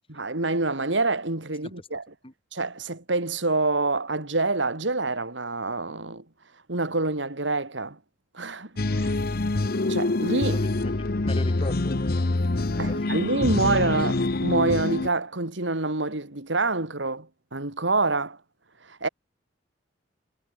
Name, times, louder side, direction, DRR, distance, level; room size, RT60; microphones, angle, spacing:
voice 1, 0.1-2.0 2.5-6.2 6.7-8.0 8.3-9.1 9.9-10.6 12.8-18.4 18.9-19.1, right 3 dB, 75° right, 2.9 m, -26 dB
sound 1, 8.8-15.1, left 2 dB, 55° left, 0.9 m, -25 dB
voice 2, 9.0-9.3 10.4-12.3 12.8-13.9, left 1 dB, 30° left, 2.8 m, -40 dB
head